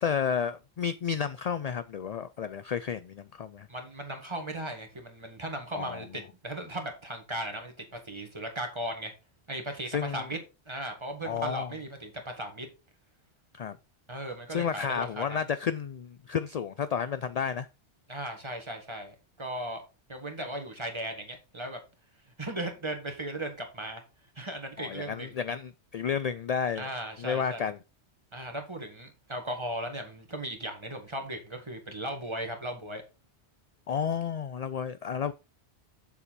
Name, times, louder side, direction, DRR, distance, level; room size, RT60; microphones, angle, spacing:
voice 1, 0.0-3.7 5.7-6.1 9.9-10.2 11.2-11.7 13.5-13.8 14.5-17.7 24.8-26.9 27.2-27.8 33.9-35.3, left 7 dB, 60° left, 0.4 m, -31 dB
voice 2, 3.7-9.1 9.5-10.4 10.7-12.7 14.1-15.3 18.1-19.8 20.1-21.8 22.4-24.0 24.4-25.3 26.8-27.6 28.3-33.0, right 1 dB, 25° right, 1.8 m, -37 dB
7.1 x 6.9 x 4.2 m
omnidirectional pair, 1.1 m